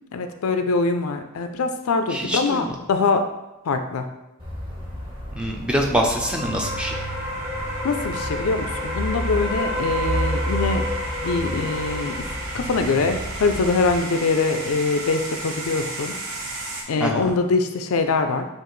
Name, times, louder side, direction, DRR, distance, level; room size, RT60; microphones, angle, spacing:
voice 1, 0.1-3.2 3.7-4.1 7.8-10.8 11.2-12.2 12.5-16.2 16.9-18.5, left 4 dB, 70° left, 7 dB, 0.4 m, -23 dB
voice 2, 2.1-2.7 5.3-6.9 17.0-17.3, equal, 5° right, 1 dB, 0.4 m, -24 dB
sound 1, 4.4-14.0, equal, 25° right, 0.9 m, -29 dB
sound 2, 6.6-16.8, right 1 dB, 65° right, 0.9 m, -34 dB
7.0 x 2.5 x 3.1 m, 0.95 s
head